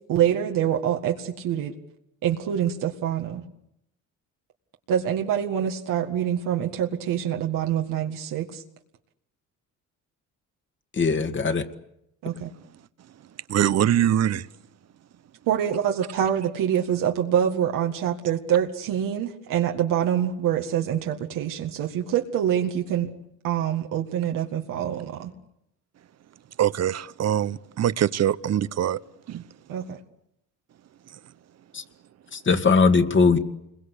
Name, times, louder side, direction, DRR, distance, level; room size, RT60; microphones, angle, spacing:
voice 1, 0.1-1.7 2.2-3.4 4.9-8.6 12.2-12.5 15.5-23.1 23.4-25.3 29.7-30.0, right 9 dB, 85° right, 2.0 m, -25 dB
voice 2, 10.9-11.7 31.7-31.8 32.3-33.4, left 4 dB, 35° left, 2.3 m, -20 dB
voice 3, 13.5-14.5 26.6-29.0 29.3-29.4, right 11 dB, 55° right, 1.0 m, -23 dB
28.5 x 22.5 x 8.3 m
cardioid pair, 105°, 32 cm